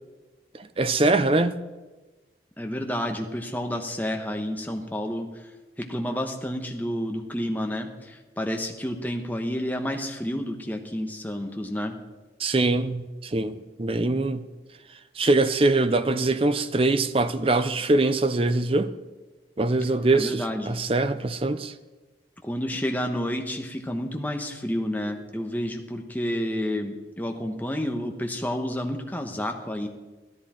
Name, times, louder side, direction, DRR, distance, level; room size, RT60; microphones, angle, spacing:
voice 1, 0.5-1.6 12.4-14.4 15.2-18.9 19.6-21.7, right 2 dB, 30° right, 0.6 m, -23 dB
voice 2, 2.6-5.5 5.8-12.0 20.1-20.8 22.4-29.9, equal, 10° left, 1.2 m, -30 dB
15.0 x 13.0 x 4.4 m
head